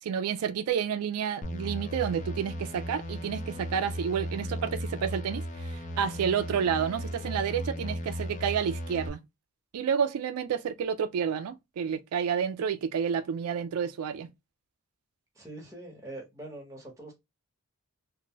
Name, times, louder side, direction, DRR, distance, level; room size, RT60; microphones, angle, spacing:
voice 1, 0.0-9.2 9.7-14.3, right 7 dB, 85° right, 0.3 m, -30 dB
sound 1, 1.4-9.1, equal, 35° left, 0.5 m, -36 dB
voice 2, 15.3-17.1, right 2 dB, 15° right, 1.0 m, -43 dB
2.8 x 2.2 x 2.8 m
head